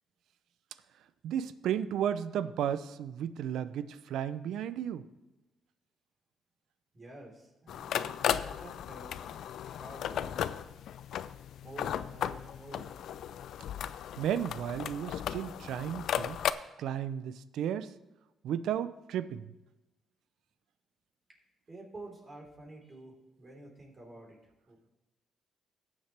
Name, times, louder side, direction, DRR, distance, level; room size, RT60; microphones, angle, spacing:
voice 1, 1.2-5.0 14.2-16.4 16.8-17.9 18.4-19.5, right 9 dB, 80° right, 14 dB, 0.5 m, -34 dB
voice 2, 6.9-8.1 8.3-9.2 9.6-10.5 11.6-12.9 21.7-24.4 24.7-24.8, right 2 dB, 30° right, -1 dB, 3.9 m, -49 dB
sound 1, 7.7-16.5, left 10 dB, 75° left, 0.4 m, -35 dB
17.5 x 7.3 x 3.4 m, 1.1 s
cardioid pair, 90°, 0 cm